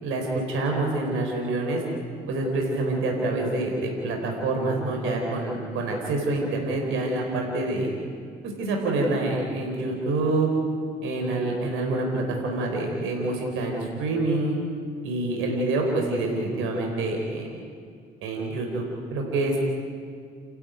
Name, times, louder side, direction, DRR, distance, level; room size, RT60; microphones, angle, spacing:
voice 1, 0.0-1.8 2.3-7.9 8.4-10.5 11.0-14.6 15.0-17.5 18.2-18.9 19.1-19.6, right 2 dB, 80° right, 1 dB, 4.4 m, -26 dB
29.5 x 13.0 x 9.1 m, 2.3 s
supercardioid pair, 60°, 21 cm